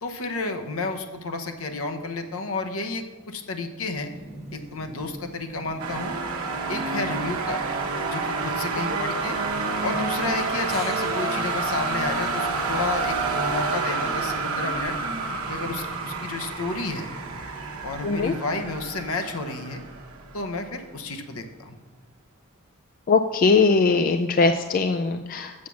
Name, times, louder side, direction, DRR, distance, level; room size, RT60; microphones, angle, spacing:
voice 1, 0.0-4.1 4.5-6.2 6.7-7.6 8.1-9.4 9.8-14.9 15.5-17.1 17.8-19.8 20.3-21.8, left 3 dB, 70° left, 6 dB, 1.0 m, -31 dB
Chirp tweet, 3.9-18.1, right 1 dB, 30° right, 1.2 m, -44 dB
sound 1, 5.8-20.6, right 3 dB, 70° right, 1.0 m, -29 dB
sound 2, 10.7-13.9, right 1 dB, ahead, 3.5 m, -47 dB
voice 2, 18.0-18.3 23.1-25.7, left 4 dB, 40° left, 6 dB, 0.3 m, -21 dB
7.5 x 7.1 x 6.2 m, 1.2 s
head